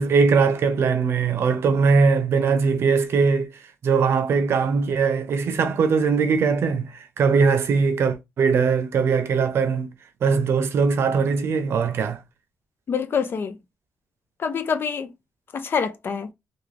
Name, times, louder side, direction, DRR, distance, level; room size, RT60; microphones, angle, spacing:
voice 1, 0.0-3.5 3.8-9.9 10.2-12.2, right 5 dB, 65° right, 0.6 m, -20 dB
voice 2, 12.9-13.6 14.4-15.1 15.5-16.3, left 6 dB, 50° left, 0.6 m, -26 dB
3.6 x 2.4 x 3.2 m
cardioid pair, 100°, 5 cm